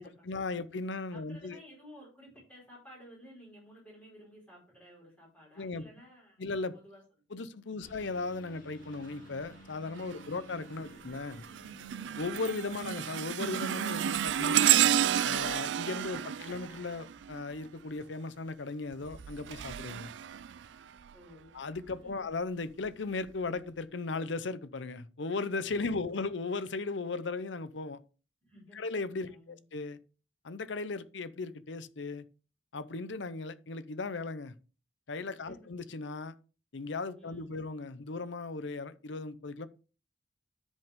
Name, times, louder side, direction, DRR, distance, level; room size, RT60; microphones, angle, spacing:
voice 1, 0.0-1.6 5.6-5.8 6.4-6.7 7.3-11.4 12.2-14.8 15.2-20.1 21.5-28.0 28.8-30.0 30.4-32.2 32.7-34.5 35.1-36.3 36.7-39.7, left 3 dB, 75° left, 0.7 m, -37 dB
voice 2, 1.1-7.0 7.3-7.9 10.1-10.4 10.8-11.1 21.1-21.6 22.0-22.2 25.9-26.3 28.4-28.8 29.2-29.6 35.5-35.6 37.2-37.6, equal, 10° left, 5.4 m, -55 dB
Engine, 7.8-13.3, right 1 dB, 45° left, 2.0 m, -54 dB
sound 1, 10.0-10.4 10.9-17.7 18.9-21.1 21.8-21.9 22.8-22.9, right 10 dB, 70° right, 0.3 m, -31 dB
10.5 x 5.3 x 3.7 m
head